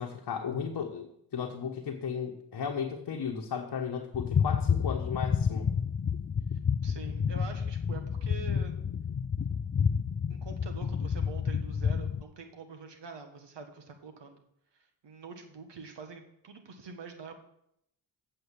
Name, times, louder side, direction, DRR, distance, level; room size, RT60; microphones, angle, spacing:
voice 1, 0.0-5.7, left 6 dB, 50° left, 2 dB, 1.2 m, -35 dB
sound 1, 4.1-12.2, left 6 dB, 30° left, 0.5 m, -30 dB
voice 2, 6.8-8.8 10.3-14.4 14.8-17.3, right 4 dB, 65° right, 6 dB, 1.8 m, -45 dB
8.0 x 6.5 x 7.3 m, 0.76 s
supercardioid pair, 45°, 46 cm